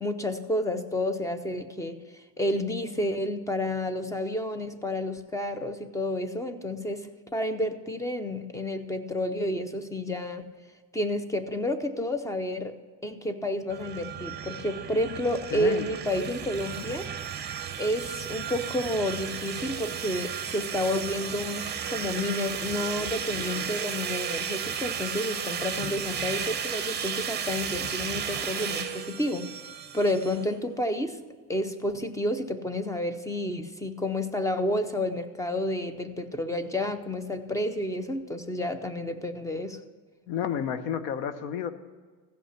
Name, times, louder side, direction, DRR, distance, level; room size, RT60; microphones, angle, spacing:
voice 1, 0.0-10.5 10.9-12.7 13.0-17.0 17.8-29.5 29.9-31.2 31.5-39.8, left 1 dB, 10° left, 10 dB, 0.5 m, -30 dB
sound 1, 13.7-30.5, right 8 dB, 25° right, 0.9 m, -34 dB
voice 2, 15.5-15.9 40.3-41.7, left 8 dB, 90° left, 11 dB, 1.0 m, -30 dB
15.0 x 5.7 x 5.8 m, 1.4 s
cardioid pair, 145°, 42 cm